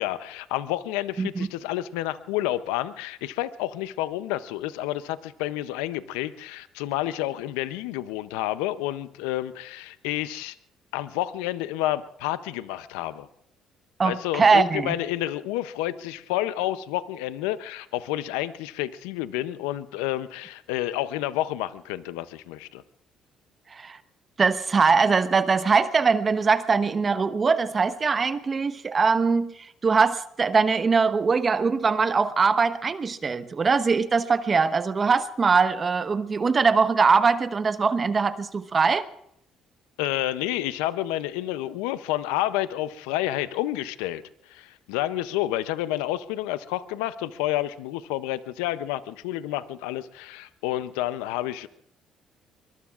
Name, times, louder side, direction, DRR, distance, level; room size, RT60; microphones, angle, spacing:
voice 1, 0.0-10.6 10.9-13.3 14.0-22.8 40.0-51.7, left 14 dB, 90° left, 14 dB, 0.6 m, -29 dB
voice 2, 14.0-14.9 23.7-24.0 24.4-29.5 29.8-39.0, right 5 dB, 40° right, 11 dB, 1.1 m, -22 dB
23.5 x 23.0 x 2.5 m, 0.74 s
supercardioid pair, 65°, 0 cm